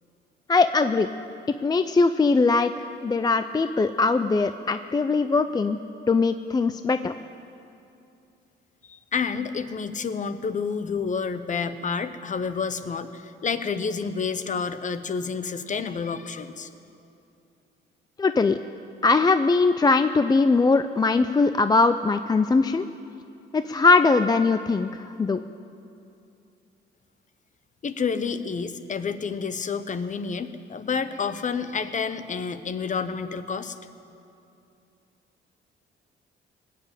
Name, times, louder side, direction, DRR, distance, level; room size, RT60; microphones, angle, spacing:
voice 1, 0.5-1.1 1.6-5.8 6.1-7.1 18.2-18.6 19.0-22.9 23.5-25.4, left 3 dB, 20° left, 10 dB, 0.4 m, -21 dB
voice 2, 8.9-16.7 27.8-33.8, left 5 dB, 40° left, 12 dB, 0.8 m, -29 dB
19.0 x 7.6 x 8.8 m, 2.7 s
cardioid pair, 90°, 20 cm